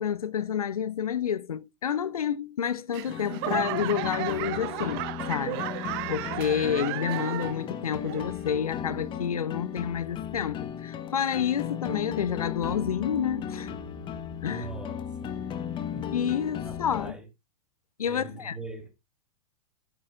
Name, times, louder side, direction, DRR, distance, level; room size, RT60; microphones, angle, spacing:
voice 1, 0.0-13.7 14.4-14.7 16.1-17.2 18.0-18.6, left 8 dB, 80° left, 0.5 m, -29 dB
Laughter / Clapping / Crowd, 2.9-7.7 8.0-8.6 9.1-9.2, right 17 dB, 45° right, 0.7 m, -34 dB
sound 1, 3.1-17.1, left 8 dB, 25° left, 1.1 m, -36 dB
voice 2, 14.5-15.3 15.9-16.1 16.6-17.2 18.0-18.9, right 4 dB, 5° right, 2.7 m, -42 dB
12.0 x 9.0 x 2.3 m
figure-of-eight pair, 105°, 18 cm